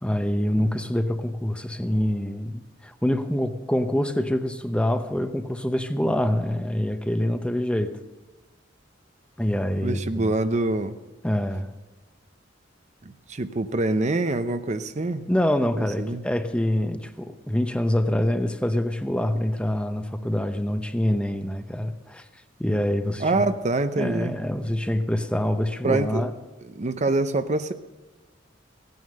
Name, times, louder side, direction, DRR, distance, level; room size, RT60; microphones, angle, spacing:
voice 1, 0.0-8.0 9.4-10.3 11.2-11.7 15.3-22.2 22.6-23.5 24.0-26.3, left 1 dB, 5° left, 8 dB, 0.8 m, -25 dB
voice 2, 9.8-11.0 13.0-15.3 15.7-16.2 23.2-24.3 25.8-26.2 26.6-27.7, right 2 dB, 40° right, 10 dB, 0.6 m, -25 dB
16.5 x 9.4 x 6.5 m, 1.2 s
head